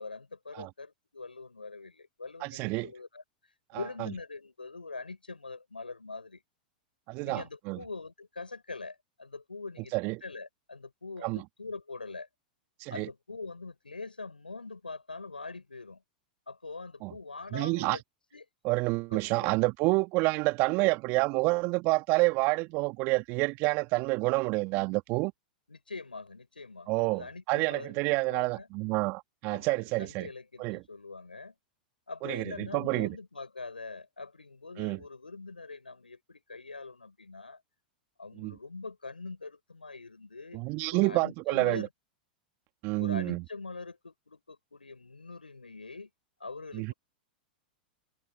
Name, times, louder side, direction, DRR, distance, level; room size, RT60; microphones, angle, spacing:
voice 1, 0.0-3.2 3.7-6.4 7.2-10.0 10.2-12.3 12.9-16.0 16.5-18.0 18.3-18.4 19.1-19.6 25.7-28.7 29.5-31.5 32.1-37.6 38.2-40.6 40.9-41.9 43.0-46.1 46.4-46.9, left 3 dB, 85° left, 6.4 m, -43 dB
voice 2, 2.4-2.9 4.0-4.1 7.1-7.8 9.9-10.2 11.2-11.4 12.8-13.1 17.0-17.1 17.5-18.0 18.6-25.3 26.9-30.3 30.6-30.8 32.2-33.2 34.8-35.0 38.4-38.5 40.5-41.9 42.8-43.4 46.7-46.9, right 25 dB, 45° right, 2.0 m, -28 dB
figure-of-eight pair, 100°, 5 cm